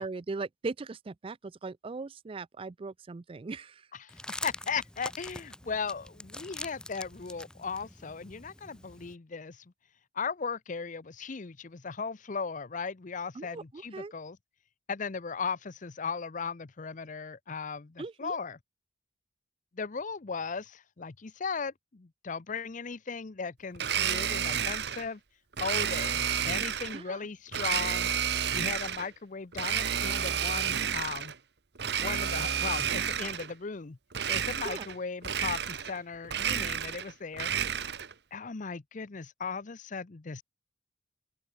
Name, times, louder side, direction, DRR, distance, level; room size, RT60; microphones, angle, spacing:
voice 1, 0.0-3.9 13.4-14.1 18.0-18.4 26.9-27.2 34.6-34.9, right 3 dB, 30° right, 0.4 m, -39 dB
voice 2, 3.9-9.6 10.1-14.4 14.9-18.6 19.7-25.2 25.6-28.1 28.5-31.3 32.0-34.0 34.3-37.5 38.3-40.4, left 5 dB, 45° left, 0.7 m, -37 dB
sound 1, 4.1-9.1, left 1 dB, 5° left, 1.4 m, -44 dB
Domestic sounds home sounds, 23.7-25.1 25.6-27.0 27.5-29.1 29.5-31.3 31.7-33.5 34.1-35.0 35.2-36.0 36.2-38.1, right 8 dB, 65° right, 1.2 m, -31 dB
open air
head